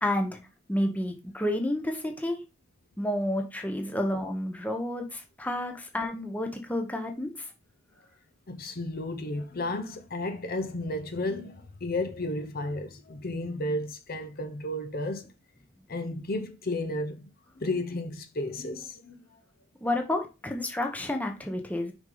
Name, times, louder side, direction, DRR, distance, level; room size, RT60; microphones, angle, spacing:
voice 1, 0.0-0.4 0.7-2.4 3.0-7.3 19.8-21.9, left 1 dB, 5° left, 0.8 m, -30 dB
voice 2, 8.5-15.2 15.9-17.3 17.6-19.2, left 1 dB, 40° left, 0.7 m, -33 dB
6.1 x 5.4 x 3.8 m
head